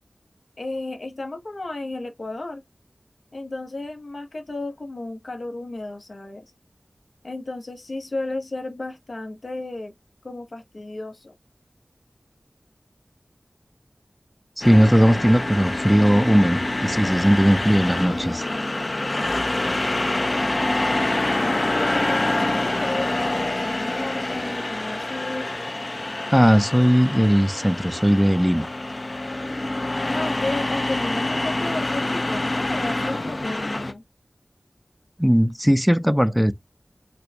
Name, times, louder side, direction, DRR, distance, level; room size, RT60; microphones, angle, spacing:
voice 1, 0.6-2.6 3.3-6.4 7.2-9.9 10.2-11.3 20.6-25.5 30.0-34.0, left 2 dB, 70° left, 1.0 m, -33 dB
sound 1, 14.6-33.9, left 2 dB, 50° left, 0.5 m, -26 dB
voice 2, 14.6-18.4 26.3-28.7 35.2-36.5, equal, 5° right, 0.4 m, -18 dB
4.3 x 2.2 x 2.7 m
wide cardioid pair, 45°, 0 cm